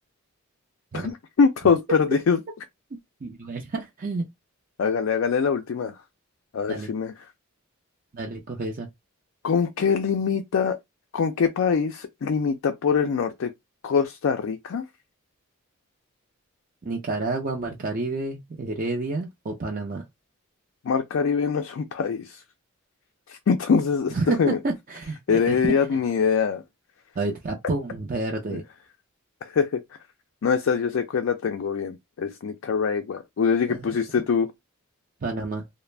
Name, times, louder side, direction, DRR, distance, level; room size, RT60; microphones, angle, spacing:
voice 1, 0.9-2.4 4.8-6.0 6.5-7.1 9.4-10.8 11.1-13.5 13.8-14.8 20.8-22.4 23.3-24.6 25.3-26.6 29.4-29.8 30.4-34.5, left 6 dB, 65° left, 0.4 m, -23 dB
voice 2, 3.2-4.2 6.7-6.9 8.1-8.9 16.8-20.0 24.1-25.6 27.2-28.6 33.7-33.9 35.2-35.6, right 3 dB, 40° right, 0.5 m, -29 dB
2.4 x 2.0 x 3.2 m
head